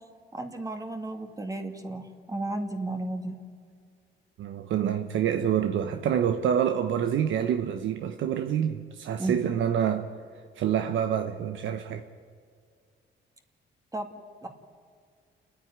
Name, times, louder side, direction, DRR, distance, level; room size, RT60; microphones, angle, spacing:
voice 1, 0.3-3.4 9.2-9.4 13.9-14.1 14.4-14.5, right 2 dB, 15° right, 2.1 m, -33 dB
voice 2, 4.4-10.1 10.6-12.0, right 9 dB, 75° right, 1.0 m, -27 dB
29.5 x 9.9 x 9.6 m
cardioid pair, 90°, 20 cm